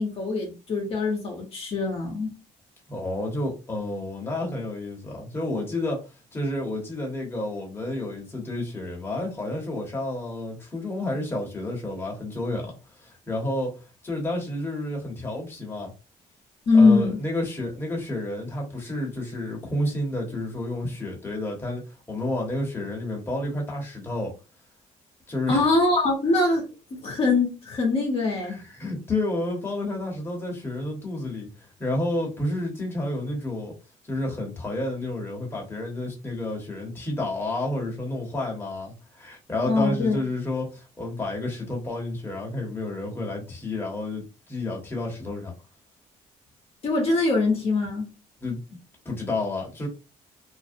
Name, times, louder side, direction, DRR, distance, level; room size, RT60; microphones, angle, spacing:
voice 1, 0.0-2.4 16.7-17.2 25.5-28.6 39.7-40.2 46.8-48.1, left 3 dB, 45° left, 0.8 m, -22 dB
voice 2, 2.9-6.0 6.3-15.9 16.7-24.3 25.3-25.6 28.5-31.5 31.8-33.7 34.0-45.5 48.4-48.8 49.0-49.9, left 1 dB, 15° left, 1.0 m, -30 dB
2.5 x 2.0 x 2.6 m
cardioid pair, 110°, 13 cm